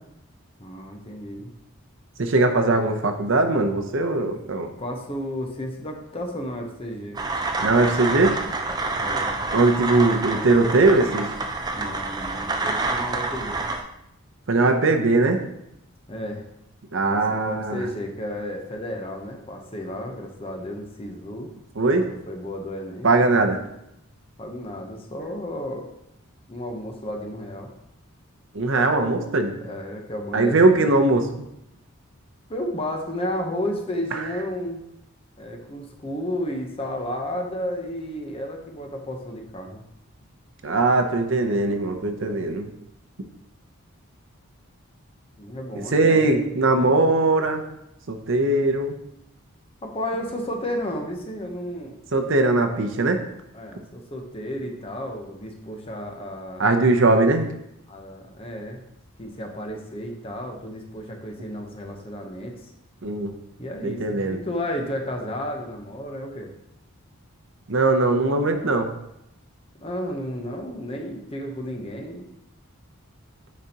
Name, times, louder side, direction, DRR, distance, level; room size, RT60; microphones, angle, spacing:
voice 1, 0.6-1.5 4.2-4.3 4.6-7.2 9.0-9.3 11.7-13.7 16.1-16.5 17.1-21.5 21.8-23.1 24.4-25.9 26.5-27.7 29.6-30.9 32.5-34.8 35.4-39.8 45.4-46.5 49.8-52.0 53.5-56.6 57.9-58.8 59.2-62.7 63.6-66.5 69.8-72.3, left 1 dB, 25° left, 2 dB, 0.8 m, -32 dB
voice 2, 2.2-4.7 7.6-8.4 9.5-11.3 14.5-15.4 16.9-17.9 21.8-22.0 23.0-23.6 28.5-29.6 30.3-31.3 40.6-42.7 45.9-47.6 48.1-48.9 52.1-53.2 56.6-57.5 63.0-63.3 63.8-64.4 67.7-68.9, right 2 dB, 55° right, 5 dB, 0.7 m, -20 dB
sound 1, 7.1-13.8, right 3 dB, 20° right, 0.4 m, -28 dB
9.7 x 4.3 x 2.9 m, 0.82 s
head